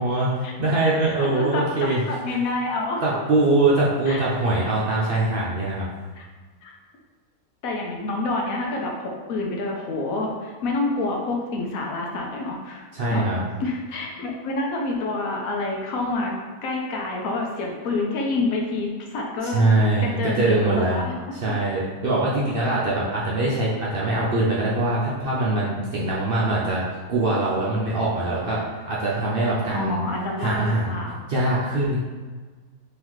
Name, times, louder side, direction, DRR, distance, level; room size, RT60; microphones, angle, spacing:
voice 1, 0.0-2.0 2.3-2.4 3.0-5.9 12.9-13.4 19.4-21.0 21.3-26.8 27.1-30.0 30.4-31.0 31.3-32.0, right 2 dB, 55° right, -6 dB, 0.7 m, -23 dB
voice 2, 1.0-3.2 4.1-4.2 6.2-6.3 6.6-6.7 7.6-13.2 13.6-16.3 16.6-19.6 20.0-21.1 29.7-31.2, left 2 dB, 75° left, 1 dB, 1.1 m, -28 dB
3.8 x 3.1 x 3.1 m, 1.4 s
omnidirectional pair, 1.5 m